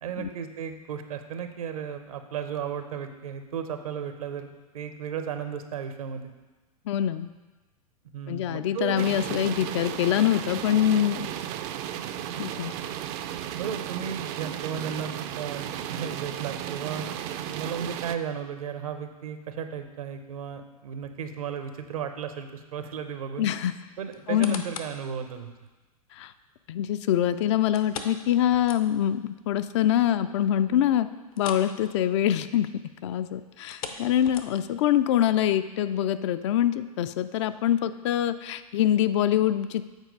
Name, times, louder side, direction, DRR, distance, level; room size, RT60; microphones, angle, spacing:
voice 1, 0.0-6.3 8.1-9.1 13.6-17.1 17.5-23.5 24.0-25.5, right 7 dB, 65° right, 8 dB, 0.8 m, -34 dB
voice 2, 6.9-7.3 8.3-11.3 12.4-12.7 23.4-23.7 24.3-24.6 26.2-26.3 26.7-31.1 31.4-32.7 33.0-39.8, left 11 dB, 50° left, 11 dB, 0.4 m, -24 dB
sound 1, 9.0-18.1, right 10 dB, 35° right, 0.4 m, -34 dB
sound 2, 24.1-25.0 25.5-25.6 27.7-29.2 29.5-29.6 30.1-30.2 31.3-31.7 32.0-32.2 33.5-34.8 35.4-35.5, left 6 dB, 65° left, 0.8 m, -39 dB
8.1 x 4.5 x 5.1 m, 1.2 s
figure-of-eight pair, 100°, 20 cm